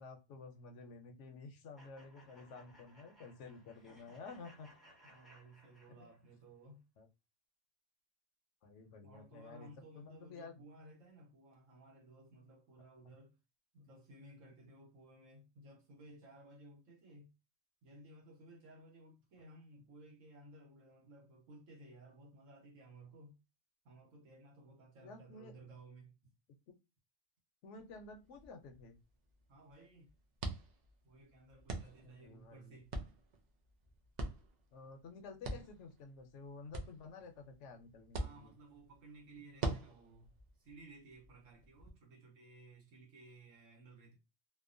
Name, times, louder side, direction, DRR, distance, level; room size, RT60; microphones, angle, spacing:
voice 1, 0.0-4.7 6.0-6.1 7.0-7.1 8.6-9.7 10.0-10.6 25.0-25.5 27.6-29.0 32.0-32.8 34.7-38.5, left 4 dB, 70° left, 0.9 m, -52 dB
sound 1, 1.8-6.4, equal, ahead, 0.6 m, -63 dB
voice 2, 5.0-6.8 9.0-13.4 13.7-17.3 17.8-23.4 23.8-26.3 29.5-30.1 31.0-32.9 38.1-40.3 40.6-44.1, right 2 dB, 80° right, 1.3 m, -58 dB
sound 2, 27.7-41.9, right 2 dB, 65° right, 0.4 m, -46 dB
2.8 x 2.1 x 2.5 m
omnidirectional pair, 1.3 m